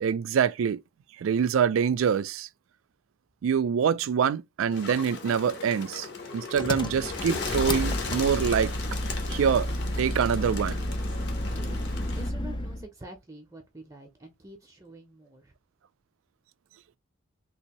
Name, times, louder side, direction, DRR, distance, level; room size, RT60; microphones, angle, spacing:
voice 1, 0.0-0.8 1.2-2.5 3.4-6.1 6.3-8.7 9.3-9.7 10.0-10.8, right 7 dB, 75° right, 0.3 m, -25 dB
Bird, 4.7-12.3, left 4 dB, 55° left, 0.9 m, -37 dB
Engine, 6.5-12.8, left 1 dB, 20° left, 0.4 m, -31 dB
voice 2, 11.4-11.8 12.2-15.5, right 1 dB, 15° right, 0.7 m, -47 dB
3.4 x 2.7 x 2.9 m
head